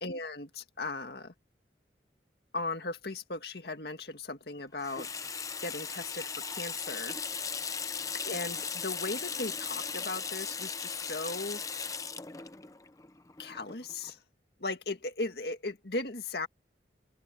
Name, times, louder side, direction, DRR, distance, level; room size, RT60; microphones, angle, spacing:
voice 1, 0.0-1.3 2.5-5.1 5.6-7.2 8.2-11.8 13.4-14.2 14.6-16.5, left 2 dB, 60° left, 2.0 m, -37 dB
Water tap faucet / Sink (filling or washing), 4.8-14.1, left 6 dB, 20° left, 0.6 m, -37 dB
open air
head